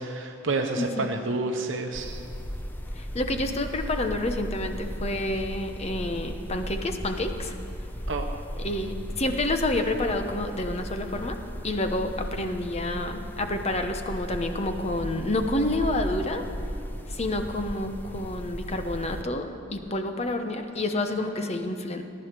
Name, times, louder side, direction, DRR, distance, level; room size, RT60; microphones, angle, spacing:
voice 1, 0.0-2.2 8.1-8.3, right 3 dB, 65° right, 3 dB, 0.9 m, -29 dB
voice 2, 0.8-1.1 2.9-7.5 8.6-11.4 11.6-16.4 17.1-22.0, left 1 dB, 30° left, 6 dB, 0.9 m, -29 dB
sound 1, 1.9-19.2, equal, 10° left, 0.7 m, -36 dB
17.5 x 10.5 x 6.8 m, 2.6 s
head